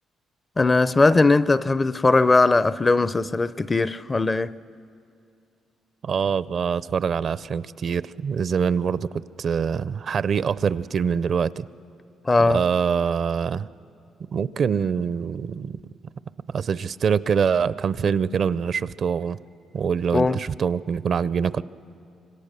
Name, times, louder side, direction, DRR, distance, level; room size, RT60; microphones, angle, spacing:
voice 1, 0.6-4.5 12.2-12.6 20.1-20.4, left 3 dB, 25° left, 0.5 m, -19 dB
voice 2, 6.0-11.7 12.5-13.7 14.3-15.8 16.5-19.4 19.7-21.6, right 6 dB, 55° right, 0.5 m, -24 dB
26.0 x 24.5 x 6.7 m
cardioid pair, 90°, 0 cm